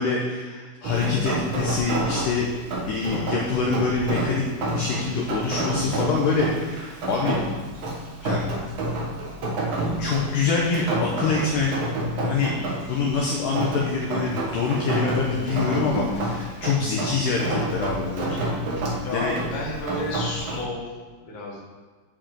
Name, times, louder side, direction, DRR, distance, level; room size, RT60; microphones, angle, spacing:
voice 1, 0.0-2.5 2.9-4.5 4.7-7.4 8.2-8.4 10.0-11.7 12.2-12.5 12.9-18.4 18.9-19.3, left 4 dB, 75° left, -2 dB, 2.0 m, -25 dB
Rain, 0.8-20.6, right 1 dB, 55° right, 1.8 m, -29 dB
voice 2, 19.0-20.8 21.3-21.6, left 1 dB, 40° left, -3 dB, 1.9 m, -31 dB
14.0 x 5.0 x 4.5 m, 1.4 s
omnidirectional pair, 5.0 m